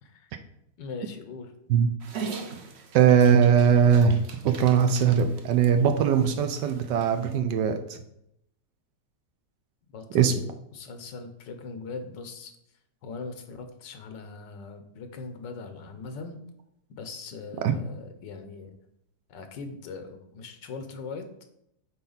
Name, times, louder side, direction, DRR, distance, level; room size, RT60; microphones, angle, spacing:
voice 1, 0.0-0.3 0.8-1.5 9.9-10.5 10.7-12.5 13.0-16.4 16.9-18.7 19.3-21.3, left 4 dB, 90° left, 7 dB, 1.6 m, -40 dB
Dog, 2.0-7.4, right 5 dB, 55° right, 0.8 m, -41 dB
voice 2, 2.9-8.0 10.1-10.3 17.6-17.8, right 7 dB, 80° right, 7 dB, 1.2 m, -20 dB
8.8 x 4.2 x 4.0 m, 0.78 s
omnidirectional pair, 1.9 m